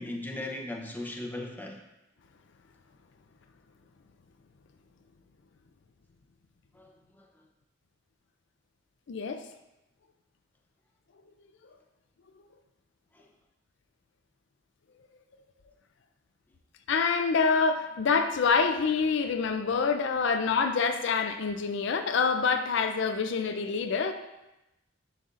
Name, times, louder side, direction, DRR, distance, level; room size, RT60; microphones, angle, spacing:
voice 1, 0.0-1.8 6.7-7.3 13.1-13.3, left 1 dB, 10° left, 1 dB, 0.7 m, -38 dB
voice 2, 9.1-9.4 16.9-24.1, left 5 dB, 65° left, 7 dB, 0.4 m, -26 dB
10.0 x 5.3 x 2.5 m, 0.95 s
head